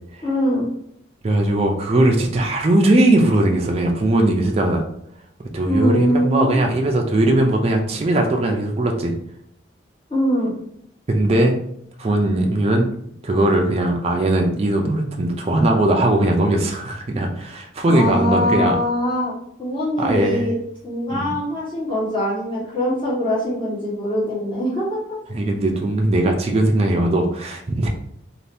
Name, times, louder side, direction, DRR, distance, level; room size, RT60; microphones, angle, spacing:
voice 1, 0.2-0.7 5.7-6.6 10.1-10.5 17.8-19.3 19.6-20.6 20.8-25.2, equal, 25° left, -8 dB, 1.1 m, -22 dB
voice 2, 1.2-4.8 5.5-9.1 11.1-11.5 12.0-12.9 13.2-18.8 20.0-20.5 21.1-21.3 25.3-27.9, right 1 dB, 30° right, 2 dB, 0.4 m, -19 dB
2.6 x 2.5 x 3.3 m, 0.71 s
head